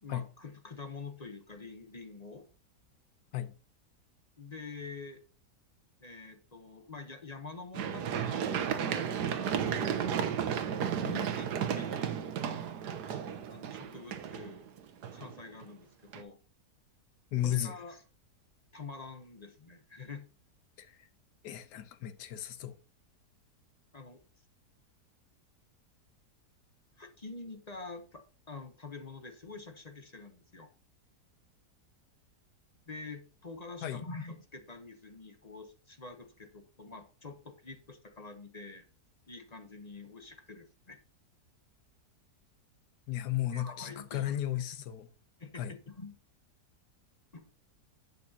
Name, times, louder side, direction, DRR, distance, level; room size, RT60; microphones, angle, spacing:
voice 1, 0.0-2.4 4.4-5.2 6.0-12.3 13.1-13.2 13.5-14.7 15.1-16.4 17.4-18.0 18.7-20.2 23.9-24.2 27.0-30.7 32.9-38.9 39.3-41.0 43.5-44.6 45.4-46.1 47.3-47.5, left 4 dB, 30° left, 0.9 m, -46 dB
Run, 7.7-15.6 16.1-16.2, right 8 dB, 80° right, 1.4 m, -33 dB
voice 2, 17.3-17.7 20.8-21.1 21.4-22.8 33.8-34.0 43.1-45.1 45.5-45.7, left 12 dB, 85° left, 1.4 m, -34 dB
10.5 x 8.5 x 2.8 m
omnidirectional pair, 1.7 m